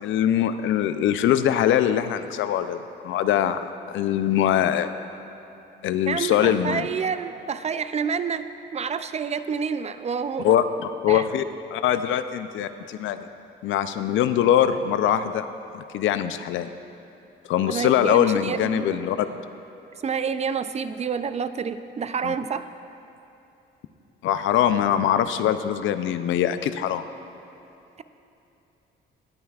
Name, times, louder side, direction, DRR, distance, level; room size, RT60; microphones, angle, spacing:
voice 1, 0.0-3.6 3.9-4.9 5.8-6.9 10.4-10.6 11.0-11.4 11.7-13.3 13.6-15.5 15.7-16.7 17.5-19.3 22.2-22.3 24.2-27.0, left 10 dB, 80° left, 11 dB, 0.5 m, -22 dB
voice 2, 6.1-10.6 11.1-11.3 17.7-19.0 20.0-22.7, right 6 dB, 35° right, 11 dB, 0.4 m, -28 dB
18.5 x 9.2 x 2.4 m, 2.9 s
cardioid pair, 90°, 20 cm